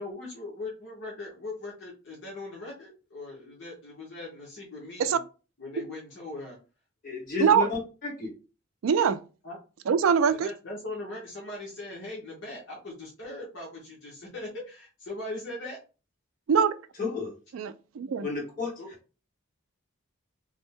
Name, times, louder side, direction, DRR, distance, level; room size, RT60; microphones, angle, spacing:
voice 1, 0.0-5.2 5.6-6.6 9.4-9.6 10.3-15.8 18.8-18.9, left 2 dB, 65° left, 1.0 m, -40 dB
voice 2, 7.0-8.3 17.0-17.3 18.2-18.7, left 4 dB, 45° left, 1.8 m, -31 dB
voice 3, 8.8-9.2 9.9-10.5 16.5-16.7 17.5-18.3, right 7 dB, 85° right, 0.4 m, -23 dB
3.4 x 2.1 x 3.6 m
head